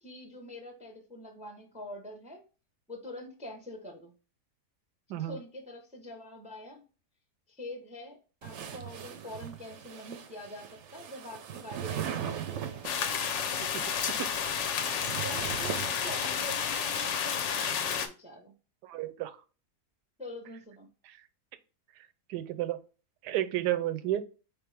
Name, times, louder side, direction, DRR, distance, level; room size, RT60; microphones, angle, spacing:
voice 1, 0.0-2.4 2.9-4.1 5.2-6.8 7.5-12.8 14.9-18.5 20.2-20.9, left 1 dB, 5° right, 3 dB, 0.6 m, -45 dB
sound 1, 8.4-13.1 14.1-16.6, right 9 dB, 60° right, 0.8 m, -39 dB
sound 2, 12.8-18.1, left 7 dB, 60° left, 0.8 m, -31 dB
voice 2, 18.8-19.4 21.0-21.2 22.3-22.8 23.2-24.3, right 13 dB, 90° right, 11 dB, 1.2 m, -32 dB
4.6 x 3.5 x 3.3 m, 0.34 s
omnidirectional pair, 1.7 m